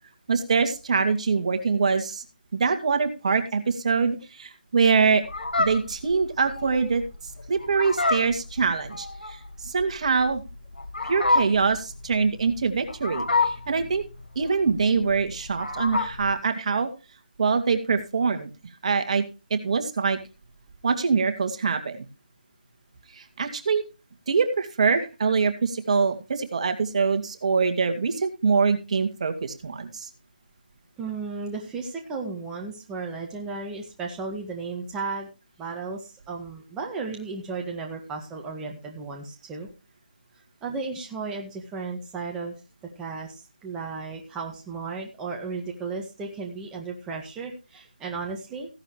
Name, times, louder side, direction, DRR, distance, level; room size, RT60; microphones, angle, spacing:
voice 1, 0.3-2.2 2.5-5.2 5.6-7.0 7.5-9.4 9.6-10.4 11.0-14.0 14.4-16.9 17.4-18.5 18.8-19.2 19.5-20.2 20.8-22.1 23.2-23.8 24.3-30.1, right 5 dB, 40° right, 7 dB, 2.4 m, -24 dB
Fowl, 5.2-16.3, left 3 dB, 75° left, 6.5 m, -28 dB
voice 2, 31.0-35.3 35.6-39.7 40.6-42.5 43.0-48.7, right 4 dB, 10° right, 0 dB, 1.8 m, -34 dB
16.0 x 11.5 x 3.2 m, 0.30 s
figure-of-eight pair, 160°, 5 cm